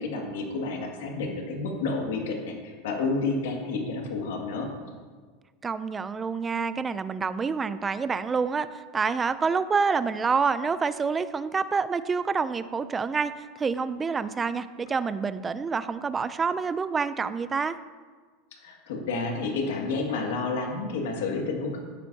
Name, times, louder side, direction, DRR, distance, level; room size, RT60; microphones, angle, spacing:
voice 1, 0.0-4.7 18.6-21.8, left 3 dB, 85° left, 1 dB, 2.0 m, -30 dB
voice 2, 5.6-17.8, right 5 dB, 15° right, 14 dB, 0.4 m, -27 dB
13.0 x 9.9 x 2.8 m, 1.5 s
supercardioid pair, 140°, 0 cm